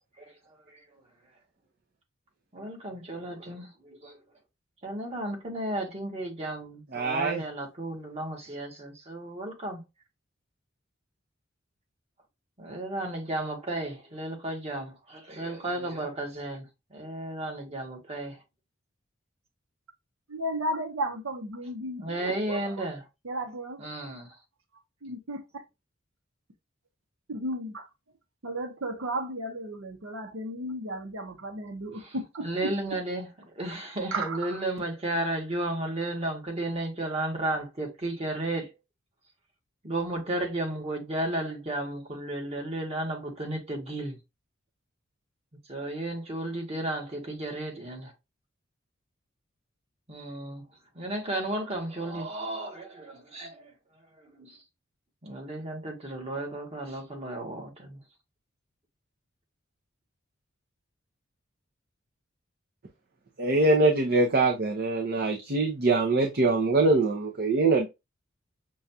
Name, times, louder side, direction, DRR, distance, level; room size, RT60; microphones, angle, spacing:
voice 1, 0.2-0.8 2.5-4.2 4.8-9.8 12.6-18.4 22.0-23.0 23.8-24.3 32.0-32.1 32.4-33.3 33.5-38.7 39.8-44.2 45.7-48.1 50.1-50.6 50.9-53.7 54.2-54.6 55.2-58.0, right 1 dB, 30° right, 1.3 m, -33 dB
voice 2, 6.9-7.4 63.4-67.9, right 3 dB, 50° right, 0.7 m, -23 dB
voice 3, 20.3-22.9 23.2-23.9 25.0-25.6 27.3-27.9 28.4-32.7 34.1-34.6, right 1 dB, 85° right, 0.8 m, -34 dB
6.1 x 2.3 x 2.6 m
head